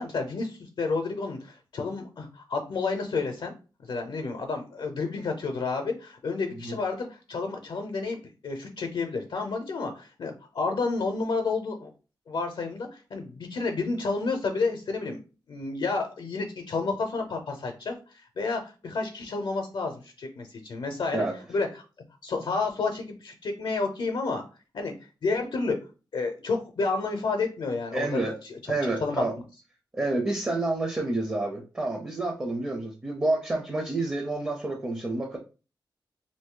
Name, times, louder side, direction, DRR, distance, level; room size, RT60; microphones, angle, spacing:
voice 1, 0.0-3.5 3.8-8.2 8.4-11.9 12.3-15.2 15.5-21.8 22.2-24.4 24.7-24.9 25.2-25.8 26.1-28.2 28.4-28.6 29.0-29.2, left 3 dB, 70° left, 4 dB, 0.6 m, -30 dB
voice 2, 27.9-28.4 28.7-29.3 29.9-35.4, right 2 dB, 20° right, 3 dB, 0.5 m, -29 dB
2.9 x 2.6 x 3.7 m, 0.34 s
wide cardioid pair, 145°, 8 cm